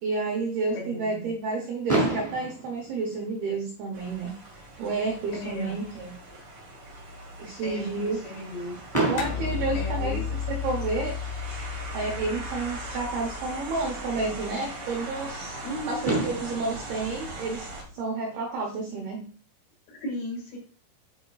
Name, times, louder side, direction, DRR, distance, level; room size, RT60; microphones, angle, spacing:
voice 1, 0.0-4.3 4.8-6.1 7.4-8.2 9.1-10.2 10.5-11.1 11.9-17.7 17.9-19.3, right 3 dB, 75° right, 0 dB, 2.3 m, -30 dB
voice 2, 0.7-1.3 5.3-5.8 7.6-8.8 9.7-10.2 15.6-16.0 19.9-20.6, left 1 dB, 60° left, -1 dB, 3.9 m, -36 dB
Fireworks, 1.9-3.9 4.7-4.8 5.0-5.2 5.5-5.6 8.9-10.8 12.5-12.6 15.6-15.7 16.0-18.3, right 2 dB, 10° left, 1.6 m, -31 dB
sound 1, 3.9-17.8, right 2 dB, 55° right, 1.3 m, -40 dB
sound 2, 9.2-13.9, left 7 dB, 85° left, 2.3 m, -33 dB
10.5 x 5.0 x 2.4 m, 0.41 s
omnidirectional pair, 5.9 m